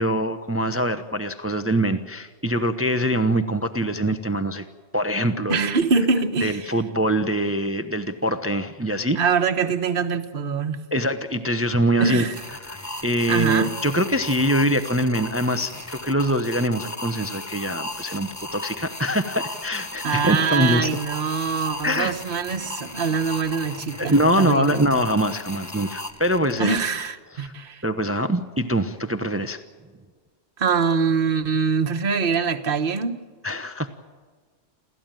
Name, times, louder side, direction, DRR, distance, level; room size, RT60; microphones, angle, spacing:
voice 1, 0.0-4.6 4.9-5.8 6.4-9.2 10.9-12.3 12.7-12.8 13.0-20.9 21.8-22.1 24.0-26.8 27.4-27.5 27.8-29.6 33.4-33.9, equal, 15° right, 9 dB, 0.8 m, -23 dB
voice 2, 5.5-6.7 9.1-10.8 12.0-12.4 13.3-13.7 20.0-24.9 26.6-27.8 30.6-33.2, right 5 dB, 55° right, 6 dB, 1.4 m, -24 dB
sound 1, 12.3-27.1, left 2 dB, 15° left, 1.0 m, -36 dB
29.0 x 14.0 x 9.1 m, 1.5 s
omnidirectional pair, 1.1 m